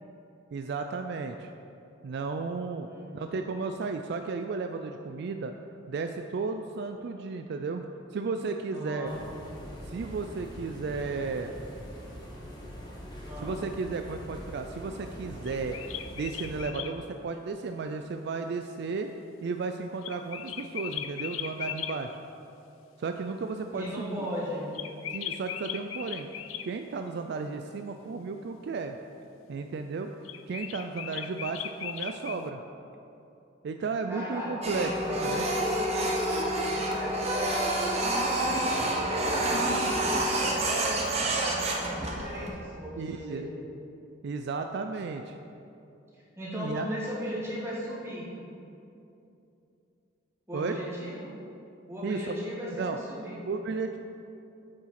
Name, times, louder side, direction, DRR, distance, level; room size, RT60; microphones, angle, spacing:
voice 1, 0.5-1.5 2.0-2.9 3.1-5.5 5.9-9.1 9.8-11.5 13.4-15.8 16.1-19.1 19.4-22.2 23.0-24.3 25.1-26.3 26.6-29.0 29.5-30.1 30.5-32.6 33.6-35.5 43.0-43.6 44.2-45.4 46.5-46.9 50.5-50.8 52.0-52.4 52.7-53.0 53.5-54.0, right 4 dB, 60° right, 6 dB, 0.3 m, -34 dB
voice 2, 2.8-3.4 8.7-9.2 13.2-13.6 23.7-24.7 34.1-36.0 36.7-37.8 38.4-43.5 46.1-48.3 50.5-51.3 51.9-53.4, equal, 15° right, -7 dB, 2.1 m, -37 dB
sound 1, 9.0-16.6, equal, 20° left, 1.4 m, -43 dB
sound 2, 15.5-16.9 20.0-22.0 24.7-26.7 30.2-32.4, left 10 dB, 90° left, 0.4 m, -37 dB
Printer, 34.6-42.5, right 1 dB, 35° right, 1.0 m, -28 dB
8.7 x 4.8 x 5.9 m, 2.8 s
head